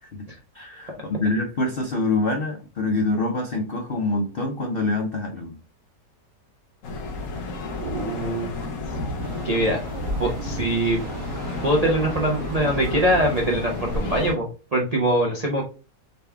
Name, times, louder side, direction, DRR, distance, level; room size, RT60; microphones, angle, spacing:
voice 1, 0.5-5.6, left 2 dB, 75° left, 3 dB, 0.5 m, -25 dB
sound 1, 6.8-14.3, left 2 dB, 55° left, 1.1 m, -31 dB
voice 2, 7.8-8.5 9.4-9.8 10.2-11.0 11.6-14.5 14.7-15.6, right 1 dB, 80° right, 0 dB, 0.3 m, -23 dB
sound 2, 9.2-14.4, right 4 dB, 60° right, 1.2 m, -39 dB
4.0 x 3.5 x 3.3 m, 0.34 s
omnidirectional pair, 1.9 m